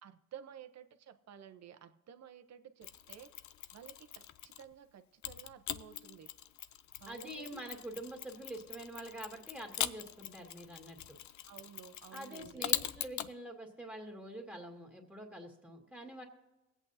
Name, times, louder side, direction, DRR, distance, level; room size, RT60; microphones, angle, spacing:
voice 1, 0.0-3.3 3.7-6.3 7.0-7.7 11.5-12.7, right 9 dB, 60° right, 9 dB, 1.0 m, -53 dB
Mechanisms, 2.8-4.7 5.2-13.3, left 12 dB, 70° left, 0.6 m, -42 dB
voice 2, 7.1-11.2 12.1-16.2, right 1 dB, 5° right, 2 dB, 2.1 m, -46 dB
22.5 x 8.5 x 2.8 m, 1.0 s
cardioid pair, 90°, 30 cm